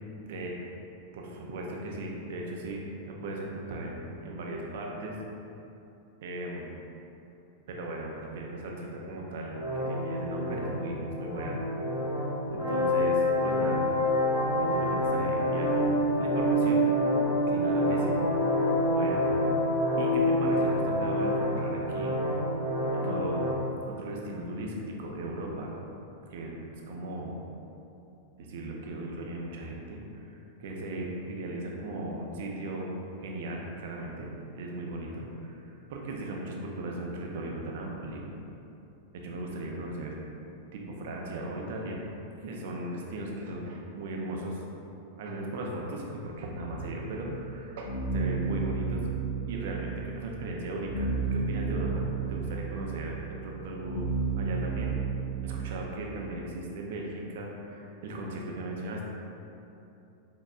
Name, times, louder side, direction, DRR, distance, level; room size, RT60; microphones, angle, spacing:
voice 1, 1.1-5.2 6.2-6.7 7.7-11.6 12.5-13.8 14.6-15.9 16.2-17.2 17.5-18.3 18.9-19.2 20.0-22.1 22.9-23.4 23.9-25.7 26.3-26.5 26.9-27.4 28.4-38.2 39.1-40.2 40.7-42.0 42.4-44.6 45.2-49.1 49.5-53.2 53.4-54.1 54.3-55.0 55.4-59.0, right 1 dB, 65° right, -1 dB, 0.6 m, -37 dB
sound 1, 9.5-23.5, equal, 70° left, 1.5 m, -27 dB
sound 2, 46.5-55.6, right 5 dB, 50° left, 1.1 m, -33 dB
4.2 x 3.0 x 2.4 m, 2.8 s
hypercardioid pair, 100°, 0 cm